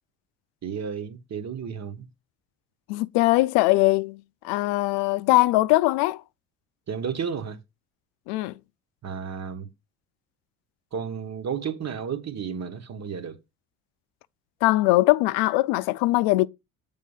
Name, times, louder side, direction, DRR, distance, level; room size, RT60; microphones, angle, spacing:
voice 1, 0.6-2.1 6.9-7.6 9.0-9.7 10.9-13.4, right 7 dB, 40° right, 1.4 m, -32 dB
voice 2, 2.9-6.2 8.3-8.5 14.6-16.5, left 19 dB, 80° left, 0.5 m, -21 dB
7.5 x 3.7 x 5.5 m
supercardioid pair, 70°, 39 cm